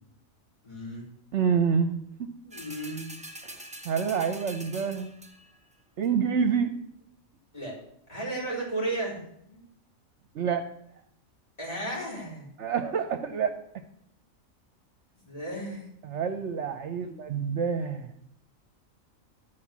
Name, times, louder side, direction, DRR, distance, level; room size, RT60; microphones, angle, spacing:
voice 1, 0.6-1.1 2.4-3.2 7.5-7.7 8.1-9.6 11.6-12.5 15.1-15.9 16.9-17.1, right 1 dB, 30° left, -3 dB, 4.6 m, -35 dB
voice 2, 1.3-2.3 3.5-5.2 6.0-6.7 10.3-10.6 12.6-13.5 16.0-18.1, right 6 dB, 65° right, 8 dB, 1.0 m, -27 dB
sound 1, 2.5-5.6 6.0-6.1, right 1 dB, 10° right, 0.6 m, -44 dB
12.5 x 4.7 x 7.3 m, 0.73 s
omnidirectional pair, 1.4 m